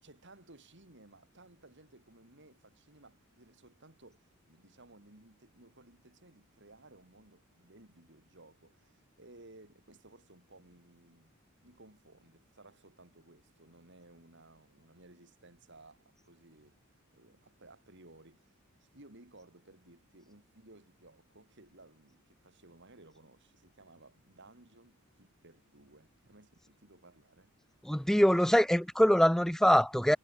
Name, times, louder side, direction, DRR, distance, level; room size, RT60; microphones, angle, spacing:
voice 1, 0.0-11.3 11.6-16.8 17.1-27.5, right 2 dB, 55° right, 4.3 m, -58 dB
voice 2, 27.8-30.2, equal, ahead, 0.4 m, -24 dB
head